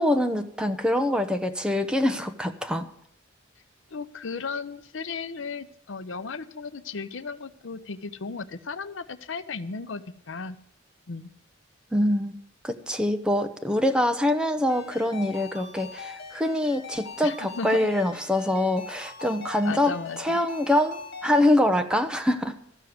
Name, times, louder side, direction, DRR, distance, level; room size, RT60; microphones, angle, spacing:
voice 1, 0.0-2.9 11.9-12.4 12.6-22.6, left 1 dB, 5° right, 6 dB, 0.8 m, -24 dB
voice 2, 3.9-10.6 11.1-11.3 17.2-17.8 19.6-20.4, left 4 dB, 70° left, 12 dB, 0.7 m, -35 dB
Ringtone, 14.7-21.6, left 5 dB, 55° left, 2.3 m, -41 dB
13.5 x 6.4 x 9.4 m, 0.69 s
head